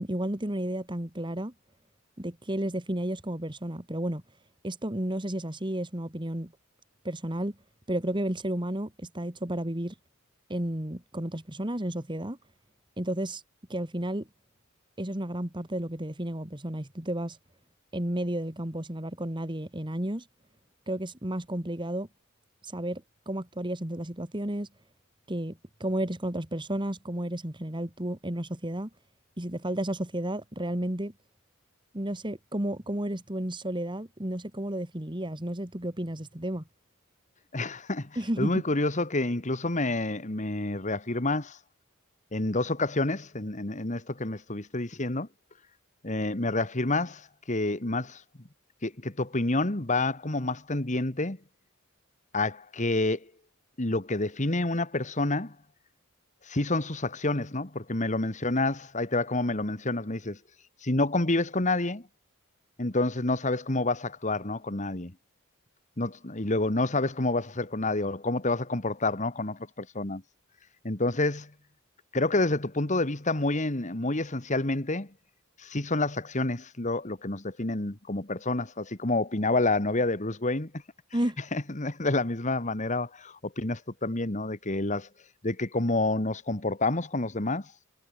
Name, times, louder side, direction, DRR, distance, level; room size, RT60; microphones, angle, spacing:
voice 1, 0.0-1.5 2.2-4.2 4.6-6.5 7.0-7.6 7.9-9.9 10.5-12.4 13.0-13.4 13.7-14.3 15.0-17.4 17.9-20.2 20.9-22.1 22.6-24.7 25.3-28.9 29.4-31.1 31.9-36.6 38.2-38.6 81.1-81.4, right 1 dB, 20° right, 2.1 m, -32 dB
voice 2, 37.5-38.1 38.4-41.6 42.3-45.3 46.0-48.2 48.8-51.4 52.3-53.3 53.8-55.6 56.5-60.4 60.8-62.1 62.8-65.1 66.0-70.2 70.8-71.5 72.1-75.1 75.6-80.7 81.5-85.1 85.4-87.7, left 2 dB, 35° left, 1.8 m, -28 dB
head